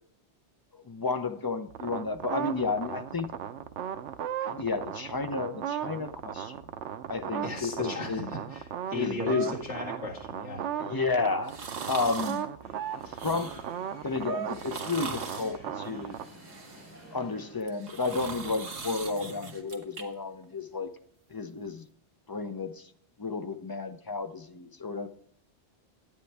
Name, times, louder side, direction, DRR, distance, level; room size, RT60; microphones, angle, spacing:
voice 1, 0.7-3.3 4.4-6.6 7.1-8.3 8.9-9.6 10.8-11.6 11.9-12.5 13.2-13.5 14.0-16.2 17.1-20.9 21.3-21.8 22.3-22.9 23.2-25.1, left 4 dB, 30° left, 8 dB, 0.4 m, -32 dB
sound 1, 1.7-16.2, right 9 dB, 85° right, 0.9 m, -37 dB
voice 2, 7.4-10.7, left 1 dB, 85° left, -4 dB, 2.4 m, -37 dB
sound 2, 11.5-12.4 13.0-13.8 14.5-15.6 16.1-17.1 17.6-20.0 20.4-20.5, right 4 dB, 60° right, 1.4 m, -40 dB
sound 3, 12.6-17.6, equal, 10° left, 4.3 m, -51 dB
10.5 x 9.5 x 3.4 m, 0.62 s
omnidirectional pair, 1.2 m